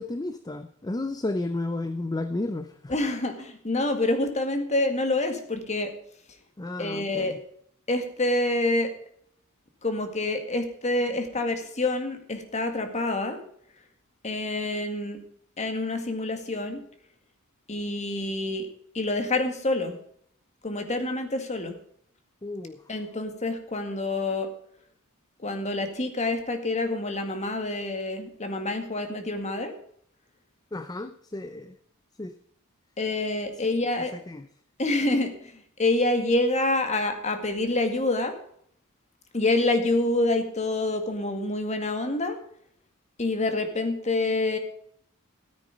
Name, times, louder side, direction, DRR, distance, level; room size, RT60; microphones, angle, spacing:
voice 1, 0.0-2.9 6.6-7.4 22.4-22.8 30.7-31.8 32.2-32.3 34.1-34.5, left 2 dB, 20° left, 11 dB, 0.5 m, -32 dB
voice 2, 2.9-5.9 6.8-7.4 7.9-8.9 9.8-13.4 14.2-15.2 15.6-16.8 17.7-18.7 18.9-20.0 20.6-21.8 22.9-24.5 25.4-29.7 33.0-34.1 34.8-38.3 39.3-42.4 43.2-44.6, left 2 dB, 35° left, 7 dB, 1.9 m, -27 dB
14.0 x 9.2 x 5.2 m, 0.64 s
head